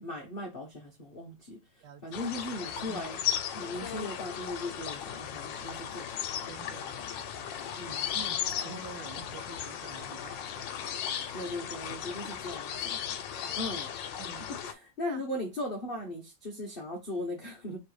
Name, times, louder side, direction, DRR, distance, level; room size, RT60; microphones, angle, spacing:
voice 1, 0.0-1.6 2.0-3.2 3.5-6.5 7.7-8.1 11.3-13.0 13.6-13.9 14.6-17.8, left 1 dB, 85° left, 0.5 m, -38 dB
voice 2, 1.8-2.2 2.9-3.1 6.5-7.8 8.1-10.7 13.5-13.6 14.2-14.5 15.1-15.2, right 6 dB, 80° right, 1.6 m, -48 dB
sound 1, 2.1-14.7, left 9 dB, 70° left, 1.2 m, -36 dB
3.4 x 3.1 x 4.7 m
omnidirectional pair, 2.4 m